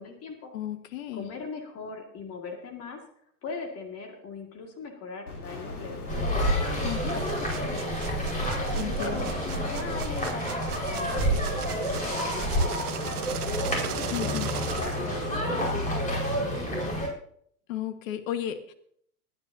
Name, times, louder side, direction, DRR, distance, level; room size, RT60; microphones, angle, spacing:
voice 1, 0.0-0.5 1.1-3.0 3.4-6.8 7.1-8.3 8.8-13.3 13.5-14.5 14.8-16.8, left 4 dB, 30° left, 3 dB, 2.1 m, -40 dB
voice 2, 0.5-1.3 6.8-7.2 8.7-9.3 14.1-14.5 17.7-18.7, left 11 dB, 60° left, 9 dB, 1.6 m, -34 dB
sound 1, 5.3-9.9, left 2 dB, 90° left, 3.8 m, -44 dB
sound 2, 6.1-17.1, equal, 15° left, 5.0 m, -29 dB
sound 3, 6.8-15.5, right 10 dB, 85° right, 1.1 m, -39 dB
20.5 x 9.8 x 2.7 m, 0.65 s
hypercardioid pair, 115°, 44 cm